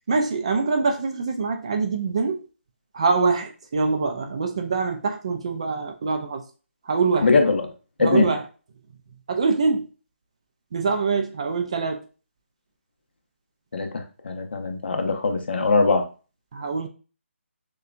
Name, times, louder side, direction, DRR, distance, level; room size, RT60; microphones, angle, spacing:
voice 1, 0.1-2.5 2.9-6.4 6.8-7.3 8.0-8.4 9.3-9.8 10.7-12.0 16.5-16.9, right 4 dB, 25° right, 0.4 m, -24 dB
voice 2, 7.2-7.7 8.0-8.3 13.7-16.1, left 3 dB, 50° left, 0.8 m, -21 dB
6.5 x 2.3 x 2.5 m
hypercardioid pair, 170°, 7 cm